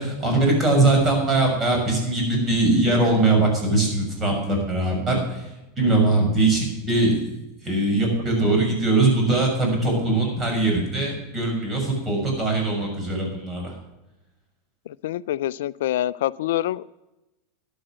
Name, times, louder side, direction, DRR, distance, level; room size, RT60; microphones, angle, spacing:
voice 1, 0.0-5.5 5.8-7.2 7.6-13.7, right 2 dB, 25° right, 1 dB, 6.5 m, -21 dB
voice 2, 14.9-16.8, left 13 dB, 70° left, 19 dB, 0.4 m, -26 dB
12.5 x 11.0 x 6.3 m, 0.96 s
hypercardioid pair, 95°, 0 cm